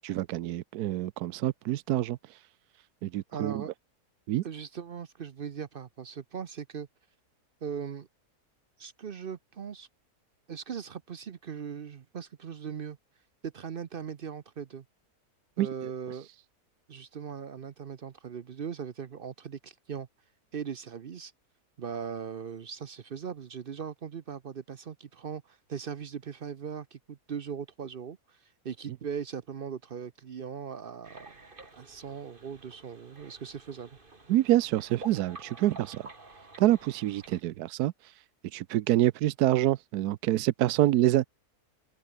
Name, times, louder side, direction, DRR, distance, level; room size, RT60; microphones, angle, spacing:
voice 1, 0.0-2.2 3.0-3.6 4.3-4.4 15.6-15.7 34.3-36.1 36.6-37.9 38.5-41.3, right 14 dB, 85° right, 1.2 m, -26 dB
voice 2, 3.3-3.7 4.4-6.9 7.6-8.1 8.8-9.9 10.5-13.0 13.4-14.8 15.6-16.3 16.9-20.1 20.5-21.3 21.8-31.4 31.7-34.0, right 7 dB, 50° right, 0.7 m, -39 dB
sound 1, 31.0-37.4, right 3 dB, 35° right, 2.8 m, -50 dB
omnidirectional pair, 1.6 m